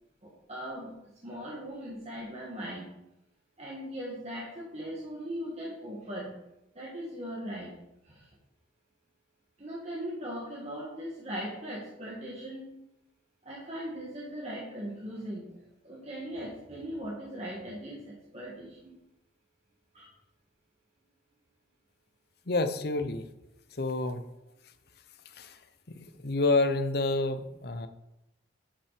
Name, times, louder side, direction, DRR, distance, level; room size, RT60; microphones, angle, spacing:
voice 1, 0.2-0.9 1.2-2.9 3.6-6.3 6.8-7.7 8.1-8.3 9.6-12.7 13.4-15.6 15.8-18.9 19.9-20.1, equal, 35° right, -4 dB, 1.8 m, -39 dB
voice 2, 22.5-23.3 23.7-24.2 25.2-25.6 25.9-27.9, left 2 dB, 55° left, 9 dB, 0.8 m, -29 dB
9.9 x 5.9 x 5.0 m, 0.88 s
head